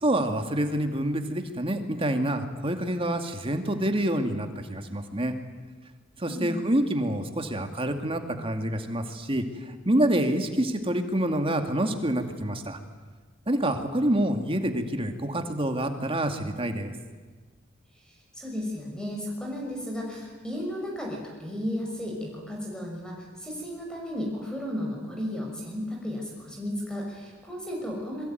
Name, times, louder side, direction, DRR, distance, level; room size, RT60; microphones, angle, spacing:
voice 1, 0.0-5.3 6.2-12.8 13.5-16.9, right 1 dB, 30° right, 6 dB, 2.5 m, -27 dB
voice 2, 18.1-28.2, equal, 5° left, -1 dB, 6.3 m, -34 dB
27.0 x 23.0 x 9.4 m, 1.4 s
head